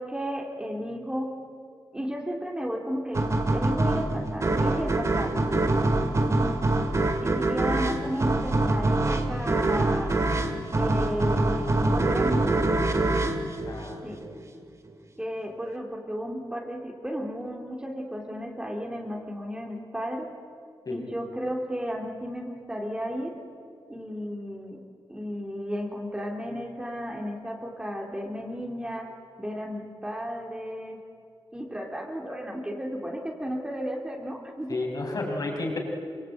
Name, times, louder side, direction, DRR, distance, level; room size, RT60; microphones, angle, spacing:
voice 1, 0.0-1.3 1.9-3.2 3.5-5.4 6.0-6.6 7.2-10.1 10.7-12.6 14.0-14.3 15.2-20.3 20.9-23.3 23.9-24.8 25.1-29.1 29.4-31.0 31.5-34.8 35.2-35.4, equal, 10° right, 0 dB, 2.9 m, -33 dB
sound 1, 3.1-14.4, right 2 dB, 35° right, 2.3 m, -25 dB
voice 2, 13.6-14.2 20.9-21.0 34.7-35.8, left 2 dB, 45° left, 0 dB, 5.6 m, -32 dB
26.5 x 24.0 x 9.2 m, 2.2 s
wide cardioid pair, 165°, 9 cm